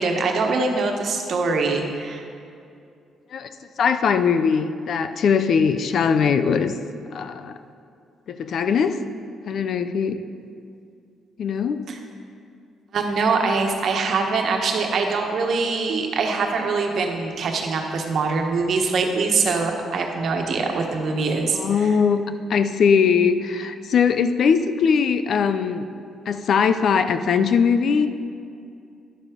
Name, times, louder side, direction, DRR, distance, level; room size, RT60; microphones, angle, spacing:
voice 1, 0.0-2.2 11.9-12.0 12.9-21.9, right 4 dB, 60° right, 2 dB, 1.3 m, -23 dB
voice 2, 3.8-6.8 7.1-7.6 8.3-9.0 9.5-10.2 11.4-11.8 21.5-22.2 22.5-25.8 26.3-28.1, left 6 dB, 60° left, 10 dB, 0.5 m, -20 dB
11.0 x 7.4 x 5.1 m, 2.5 s
cardioid pair, 90°, 0 cm